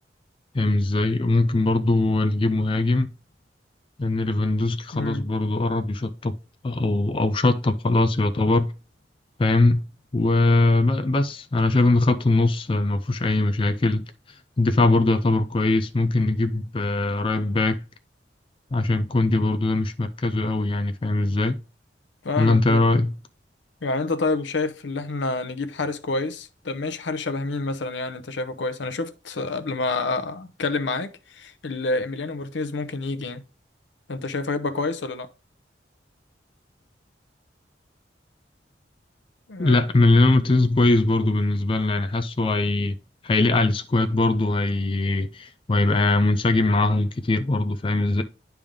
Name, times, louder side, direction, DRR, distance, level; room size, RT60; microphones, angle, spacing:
voice 1, 0.5-3.1 4.0-6.3 6.6-8.7 9.4-9.8 10.1-14.0 14.6-17.8 18.7-21.6 22.4-23.1 39.6-43.0 43.2-48.2, left 2 dB, 30° left, 0.4 m, -21 dB
voice 2, 4.9-5.3 22.2-22.8 23.8-33.4 34.1-35.3 39.5-39.8, left 3 dB, 85° left, 0.7 m, -28 dB
10.0 x 3.5 x 3.6 m
head